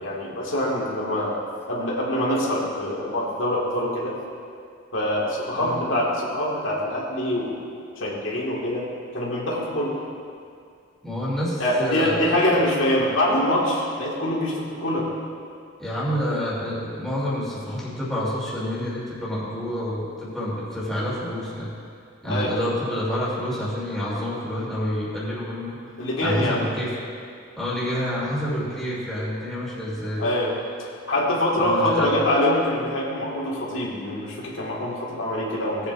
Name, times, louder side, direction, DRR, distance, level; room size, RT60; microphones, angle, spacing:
voice 1, 0.0-1.4 1.7-4.1 4.9-7.5 8.0-8.9 9.1-10.0 11.6-15.1 22.3-22.6 26.0-26.6 30.2-30.5 31.1-35.9, left 1 dB, 90° left, -4 dB, 1.9 m, -24 dB
voice 2, 11.0-12.4 15.8-21.7 22.2-25.8 26.2-26.9 27.6-30.2 31.6-32.1, equal, ahead, -9 dB, 2.9 m, -28 dB
18.0 x 8.2 x 2.6 m, 2.3 s
head